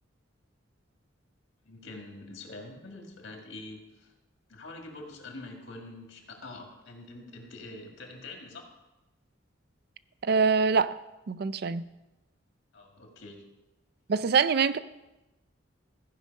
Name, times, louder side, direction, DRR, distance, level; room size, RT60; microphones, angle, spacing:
voice 1, 1.7-4.1 4.5-8.7 12.7-13.4, left 2 dB, 75° left, 3 dB, 1.9 m, -45 dB
voice 2, 10.2-10.9 11.3-11.8 14.1-14.8, right 5 dB, 55° right, 15 dB, 0.4 m, -24 dB
14.5 x 5.4 x 5.3 m, 1.0 s
head